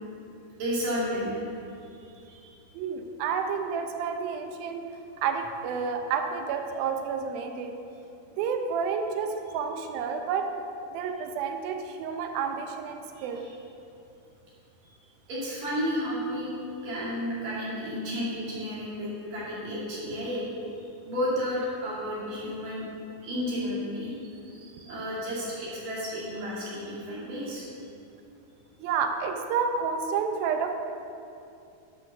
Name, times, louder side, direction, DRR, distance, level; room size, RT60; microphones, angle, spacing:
voice 1, 0.6-1.4 1.9-2.6 13.1-13.5 14.8-15.0 15.3-16.5 16.8-20.5 21.1-22.9 23.2-27.7, equal, 60° right, -7 dB, 3.5 m, -32 dB
voice 2, 2.7-4.8 5.2-7.7 8.4-10.5 10.9-13.4 28.8-30.7, right 6 dB, 75° right, 5 dB, 2.4 m, -30 dB
11.0 x 6.1 x 6.5 m, 2.7 s
omnidirectional pair, 4.5 m